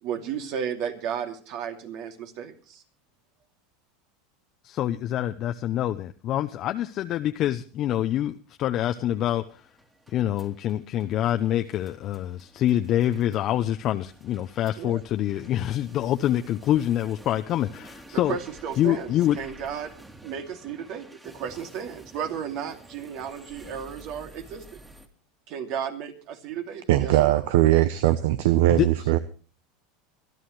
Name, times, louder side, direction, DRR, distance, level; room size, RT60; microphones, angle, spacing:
voice 1, 0.0-2.8 14.8-15.0 18.1-24.6 25.5-27.4, right 8 dB, 60° right, 5 dB, 2.7 m, -34 dB
voice 2, 4.6-8.3 8.6-9.6 10.1-18.4 18.8-19.4 28.8-28.9, left 12 dB, 45° left, 7 dB, 0.7 m, -26 dB
sound 1, 6.7-25.1, right 2 dB, 15° right, 2.4 m, -51 dB
voice 3, 26.9-29.2, right 14 dB, 75° right, 14 dB, 0.8 m, -20 dB
25.5 x 11.0 x 3.2 m, 0.39 s
hypercardioid pair, 105°, 0 cm